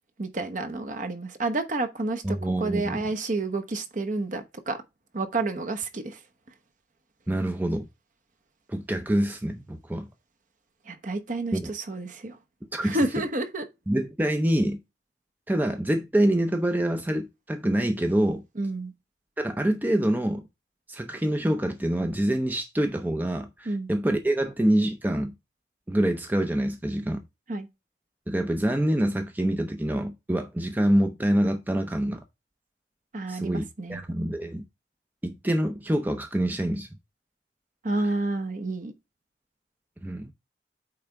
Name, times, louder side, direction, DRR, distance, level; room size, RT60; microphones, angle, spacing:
voice 1, 0.2-4.8 5.1-6.2 10.9-12.4 12.8-13.7 18.6-18.9 23.7-23.9 27.5-27.7 33.1-34.0 37.8-38.9, right 2 dB, 45° right, 1.0 m, -30 dB
voice 2, 2.2-3.1 7.3-7.9 8.7-10.1 11.5-11.7 12.7-13.0 13.9-14.8 15.5-18.4 19.4-20.4 20.9-25.3 25.9-27.2 28.3-32.2 33.3-34.6 35.2-36.9 40.0-40.3, right 1 dB, 10° right, 0.5 m, -26 dB
8.7 x 3.4 x 4.6 m
head